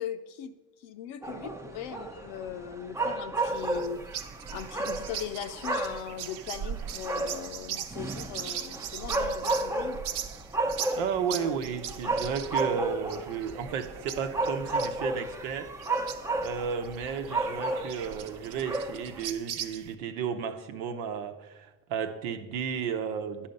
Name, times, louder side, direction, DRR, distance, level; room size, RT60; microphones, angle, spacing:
voice 1, 0.0-4.0 4.5-10.0 11.2-11.6, left 9 dB, 80° left, 0.8 m, -39 dB
sound 1, 1.2-19.3, right 2 dB, 5° right, 0.5 m, -33 dB
sound 2, 3.5-20.0, right 9 dB, 65° right, 0.8 m, -40 dB
voice 2, 11.0-15.8 16.4-23.5, right 7 dB, 90° right, 1.0 m, -33 dB
10.5 x 5.7 x 5.2 m
supercardioid pair, 95°, 44 cm